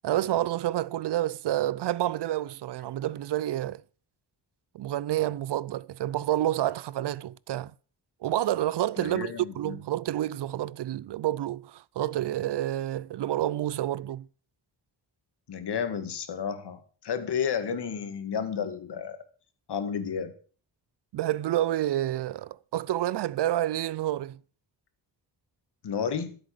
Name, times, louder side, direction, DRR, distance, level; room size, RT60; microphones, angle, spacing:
voice 1, 0.0-3.8 4.7-7.7 8.2-14.3 21.1-24.4, right 13 dB, 70° right, 0.6 m, -29 dB
voice 2, 9.0-9.8 15.5-19.2 19.7-20.3 25.8-26.4, left 7 dB, 70° left, 2.1 m, -32 dB
13.5 x 8.0 x 6.7 m
wide cardioid pair, 130°, 42 cm